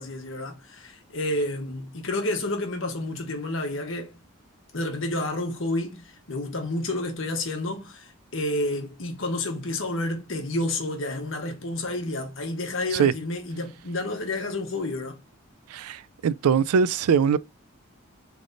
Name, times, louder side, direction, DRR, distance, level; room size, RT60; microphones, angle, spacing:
voice 1, 0.0-4.1 4.7-6.0 6.3-15.2, left 1 dB, 60° left, 1.1 m, -30 dB
voice 2, 15.7-17.4, right 6 dB, 90° right, 0.3 m, -22 dB
3.8 x 3.3 x 3.8 m
head